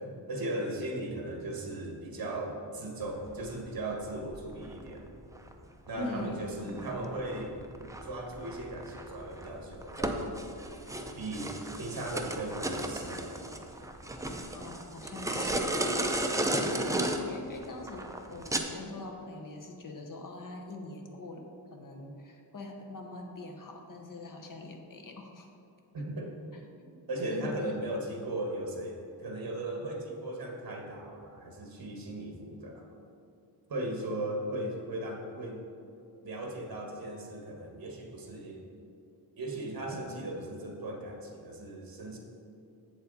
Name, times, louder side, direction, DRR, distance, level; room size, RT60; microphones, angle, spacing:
voice 1, 0.3-5.1 5.9-7.6 8.0-10.2 11.1-13.5 25.9-26.3 27.1-32.9 33.7-35.6 36.2-38.6 39.4-42.2, right 1 dB, 55° right, 1 dB, 1.4 m, -37 dB
sound 1, 3.0-18.6, right 1 dB, 10° right, 0.4 m, -35 dB
voice 2, 6.0-6.8 14.5-15.9 16.5-25.6 26.9-27.0 27.2-27.5, left 2 dB, 50° left, 3 dB, 1.0 m, -43 dB
7.9 x 7.1 x 4.0 m, 2.6 s
wide cardioid pair, 140°, 42 cm